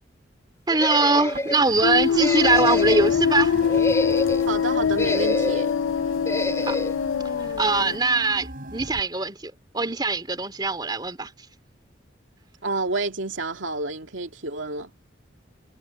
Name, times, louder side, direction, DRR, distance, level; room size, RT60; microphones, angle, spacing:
sound 1, 0.7-1.6 2.2-3.1 3.6-4.5 5.0-5.7 6.3-6.9, left 1 dB, 15° left, 3.2 m, -28 dB
voice 1, 0.7-3.5 6.7-6.8 7.6-11.3, right 3 dB, 20° right, 3.0 m, -22 dB
sound 2, 1.3-9.0, right 1 dB, 45° right, 7.5 m, -40 dB
sound 3, 1.8-8.0, left 7 dB, 90° left, 0.4 m, -23 dB
voice 2, 4.5-5.7 12.6-14.9, right 2 dB, 85° right, 2.4 m, -29 dB
head